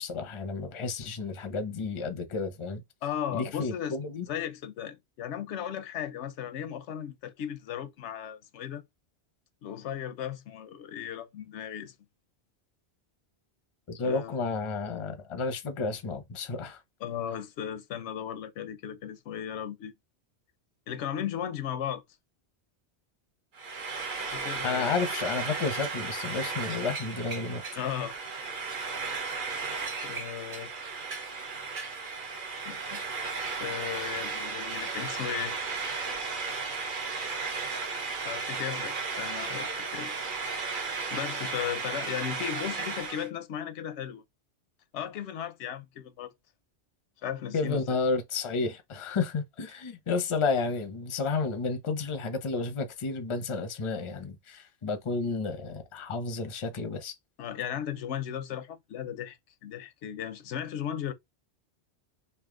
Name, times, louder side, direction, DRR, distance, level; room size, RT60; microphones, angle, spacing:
voice 1, 0.0-2.8 3.3-4.3 13.9-16.8 24.6-27.6 47.5-57.1, left 4 dB, 35° left, 0.6 m, -31 dB
voice 2, 3.0-4.0 4.3-8.8 9.6-11.9 14.0-14.3 17.0-19.9 20.9-22.0 24.3-24.9 27.8-28.1 30.0-30.7 32.7-33.0 33.6-35.6 38.2-40.2 41.1-44.2 44.9-46.3 47.2-47.8 57.4-61.1, left 9 dB, 85° left, 0.9 m, -36 dB
Frying (food), 23.5-43.3, right 4 dB, 50° right, 0.9 m, -35 dB
3.3 x 2.7 x 3.6 m
omnidirectional pair, 1.1 m